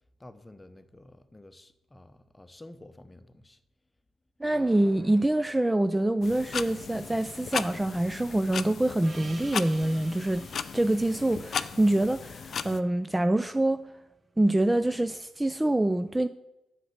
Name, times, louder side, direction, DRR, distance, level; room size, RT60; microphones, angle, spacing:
voice 1, 0.2-3.6, left 1 dB, 15° left, 0.8 m, -50 dB
voice 2, 4.4-10.5 10.7-13.9 14.4-16.3, right 1 dB, 15° right, 0.4 m, -25 dB
sound 1, 4.4-7.3, right 1 dB, 65° right, 2.8 m, -53 dB
sound 2, 6.2-12.8, left 6 dB, 50° left, 0.4 m, -36 dB
Gong, 9.0-13.8, right 3 dB, 40° right, 1.0 m, -50 dB
7.8 x 6.0 x 6.3 m
figure-of-eight pair, 40°, 0 cm